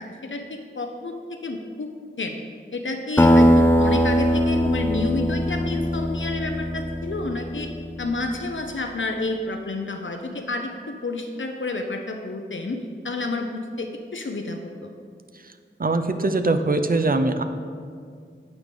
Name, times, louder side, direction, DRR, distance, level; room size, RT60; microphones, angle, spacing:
voice 1, 0.0-1.9 2.2-2.4 2.7-7.7 8.0-12.8 13.0-14.9, left 2 dB, 70° left, 4 dB, 0.6 m, -30 dB
Acoustic guitar, 3.2-8.0, equal, 10° left, 0.5 m, -20 dB
voice 2, 15.8-17.4, right 2 dB, 45° right, 7 dB, 0.5 m, -22 dB
8.3 x 4.8 x 5.2 m, 2.1 s
wide cardioid pair, 45°, 21 cm